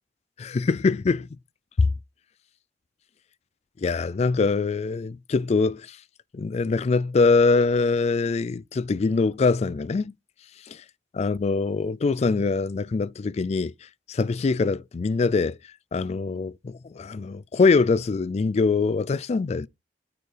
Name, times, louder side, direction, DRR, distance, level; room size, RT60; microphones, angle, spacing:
voice 1, 0.4-1.3 1.8-1.9 3.8-6.0 6.3-10.1 11.2-13.7 14.1-15.6 15.9-19.7, left 4 dB, 35° left, 0.3 m, -23 dB
8.3 x 4.4 x 3.3 m
head